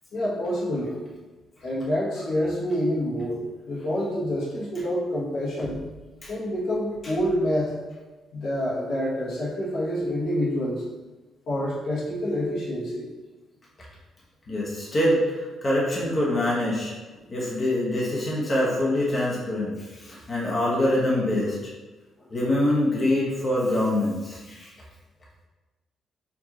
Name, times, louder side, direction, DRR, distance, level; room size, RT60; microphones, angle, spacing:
voice 1, 0.1-1.0 1.6-5.8 6.3-7.7 8.3-10.8 11.5-13.1, equal, 70° left, -6 dB, 1.2 m, -27 dB
voice 2, 14.5-16.9 17.3-21.7 22.3-24.7, left 1 dB, 40° left, -6 dB, 1.1 m, -25 dB
4.8 x 2.7 x 2.9 m, 1.2 s
cardioid pair, 90°, 0 cm